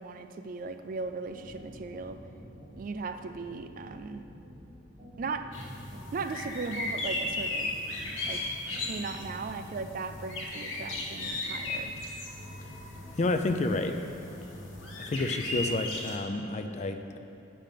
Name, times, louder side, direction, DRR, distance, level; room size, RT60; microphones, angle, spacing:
voice 1, 0.0-2.2 2.8-4.2 5.2-5.5 6.1-7.7 8.3-8.4 8.9-11.9, right 4 dB, 45° right, 8 dB, 0.3 m, -37 dB
sound 1, 0.9-15.7, equal, 15° right, 1.4 m, -50 dB
sound 2, 5.5-16.2, left 2 dB, 80° left, 1.3 m, -36 dB
voice 2, 13.2-14.0 15.0-17.2, left 2 dB, 35° left, 7 dB, 0.4 m, -30 dB
7.5 x 5.1 x 5.7 m, 2.7 s
head